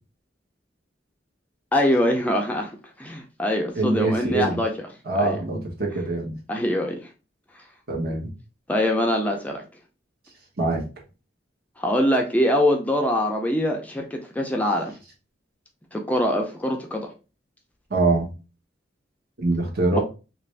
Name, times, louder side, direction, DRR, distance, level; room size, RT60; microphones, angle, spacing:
voice 1, 1.7-2.7 3.0-4.7 5.2-5.4 6.5-7.0 8.7-9.6 11.8-14.9 15.9-17.1 19.9-20.0, left 1 dB, 10° left, 2 dB, 0.4 m, -23 dB
voice 2, 3.7-4.6 5.1-6.4 7.9-8.3 10.6-10.9 17.9-18.3 19.4-20.0, right 2 dB, 55° right, 0 dB, 0.9 m, -23 dB
3.0 x 2.5 x 3.2 m, 0.31 s
head